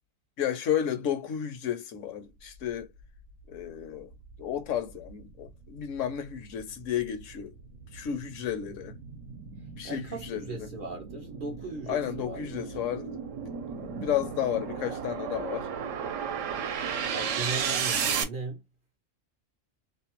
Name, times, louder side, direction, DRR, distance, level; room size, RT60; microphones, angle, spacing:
voice 1, 0.4-2.9 3.5-4.1 4.4-7.5 7.9-9.0 9.8-10.7 11.9-15.7, left 10 dB, 75° left, 0.9 m, -32 dB
sound 1, 3.5-3.6 4.1-18.2, right 7 dB, 75° right, 0.9 m, -35 dB
voice 2, 9.8-12.8 17.1-18.6, right 3 dB, 55° right, 0.6 m, -38 dB
2.6 x 2.1 x 2.8 m
omnidirectional pair, 1.4 m